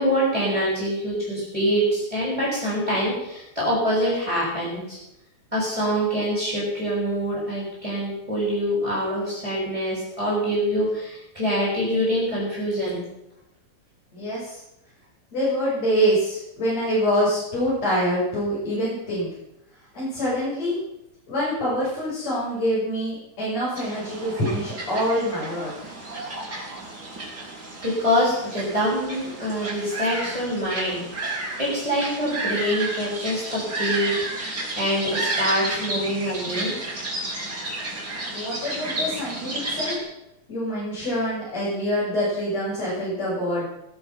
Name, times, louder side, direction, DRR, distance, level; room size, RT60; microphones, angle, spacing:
voice 1, 0.0-5.0 5.5-13.0 27.8-34.2 34.8-36.7, equal, 10° right, -6 dB, 7.1 m, -25 dB
voice 2, 14.1-14.6 15.3-19.3 19.9-20.8 21.3-25.9 37.5-37.6 38.3-40.0 40.5-43.6, equal, 60° left, -8 dB, 8.2 m, -25 dB
sound 1, 23.7-40.0, right 2 dB, 35° right, 5.3 m, -32 dB
18.0 x 13.0 x 6.1 m, 0.86 s
omnidirectional pair, 3.3 m